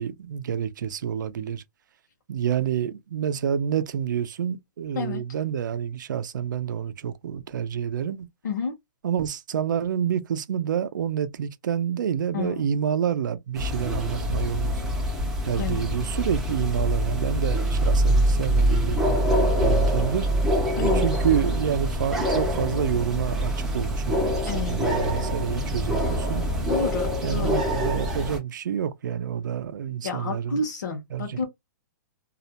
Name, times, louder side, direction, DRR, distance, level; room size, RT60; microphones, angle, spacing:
voice 1, 0.0-1.6 2.3-8.3 9.0-14.8 15.4-19.0 19.6-20.3 20.8-26.4 27.2-30.6 31.1-31.4, right 8 dB, 80° right, 0.4 m, -28 dB
voice 2, 12.3-12.6 15.6-15.8 20.8-21.0 24.4-24.8 26.7-27.5 30.0-31.5, left 4 dB, 65° left, 0.8 m, -30 dB
sound 1, 13.6-28.4, equal, 5° right, 0.3 m, -24 dB
2.4 x 2.1 x 2.8 m
hypercardioid pair, 180°, 10 cm